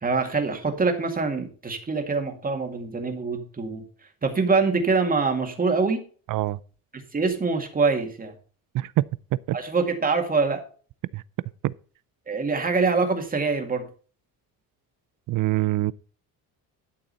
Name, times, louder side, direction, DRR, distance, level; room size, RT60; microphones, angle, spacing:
voice 1, 0.0-3.8 4.2-6.0 6.9-8.3 9.5-10.6 12.3-13.8, right 4 dB, 20° right, 2.1 m, -24 dB
voice 2, 6.3-6.6 8.7-9.6 11.1-11.2 11.6-11.7 15.3-15.9, right 16 dB, 55° right, 0.5 m, -25 dB
12.0 x 6.7 x 4.0 m
cardioid pair, 145°, 38 cm